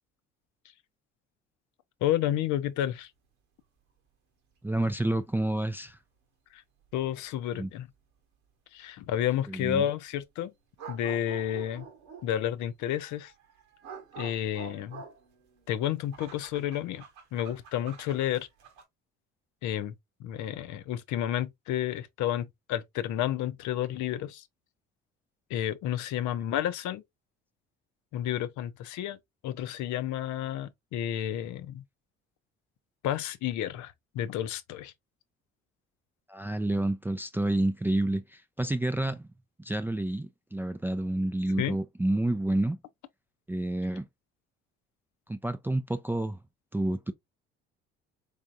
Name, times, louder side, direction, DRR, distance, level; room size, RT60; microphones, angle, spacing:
voice 1, 2.0-3.1 6.5-6.6 6.9-7.9 8.7-10.5 10.9-11.9 12.2-13.3 14.2-15.0 15.7-17.0 17.3-18.5 19.6-19.9 20.2-24.5 25.5-27.0 28.1-29.2 29.4-31.8 33.0-34.9 41.6-41.8, left 11 dB, 60° left, 0.6 m, -31 dB
voice 2, 4.6-6.0 7.6-7.7 9.5-9.8 36.3-39.3 39.6-42.8 43.5-44.1 45.3-46.4 46.7-47.1, right 1 dB, 5° right, 0.4 m, -29 dB
sound 1, 5.9-6.0 6.9-7.0 10.8-12.4 13.0-18.8, right 6 dB, 80° right, 1.2 m, -47 dB
3.6 x 3.4 x 2.5 m
hypercardioid pair, 55°, 33 cm